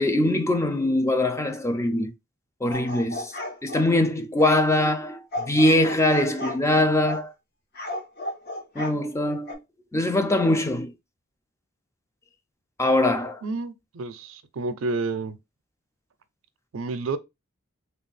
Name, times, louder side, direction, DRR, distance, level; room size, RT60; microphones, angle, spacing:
voice 1, 0.0-2.1 2.6-3.3 3.6-7.3 8.8-9.6 9.9-10.9 12.8-13.4, left 1 dB, 15° left, 0.4 m, -22 dB
sound 1, 2.7-3.9 4.4-4.6 5.3-6.6 7.0-7.3 7.7-9.0 9.5-9.6, left 1 dB, 50° left, 0.8 m, -33 dB
voice 2, 13.4-15.4 16.7-17.2, right 3 dB, 75° right, 0.5 m, -30 dB
3.3 x 2.3 x 3.9 m
head